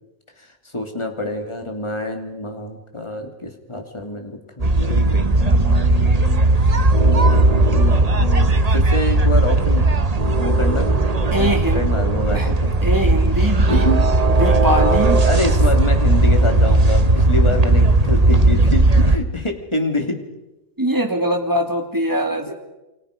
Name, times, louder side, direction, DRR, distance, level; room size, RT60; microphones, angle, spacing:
voice 1, 0.4-6.5 7.0-9.9 10.4-10.9 11.4-12.7 13.6-14.0 15.2-20.2 22.5-22.6, left 2 dB, 20° left, 4 dB, 2.8 m, -27 dB
sound 1, 4.6-19.2, right 2 dB, 30° right, 1.2 m, -16 dB
voice 2, 11.3-11.8 12.3-12.5 12.8-13.9 14.4-15.2 20.8-22.5, equal, 15° right, 3 dB, 2.8 m, -22 dB
29.0 x 24.0 x 5.2 m, 1.0 s
omnidirectional pair, 1.5 m